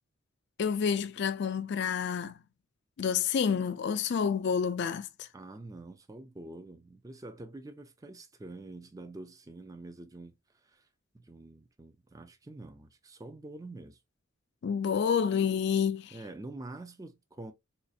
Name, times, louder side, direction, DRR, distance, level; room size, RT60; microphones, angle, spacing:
voice 1, 0.6-2.4 3.0-5.3 14.6-16.2, left 7 dB, 55° left, 0.3 m, -29 dB
voice 2, 5.3-10.3 10.6-10.9 11.1-14.0 16.1-17.5, right 2 dB, 15° right, 0.4 m, -46 dB
4.2 x 2.4 x 2.6 m
head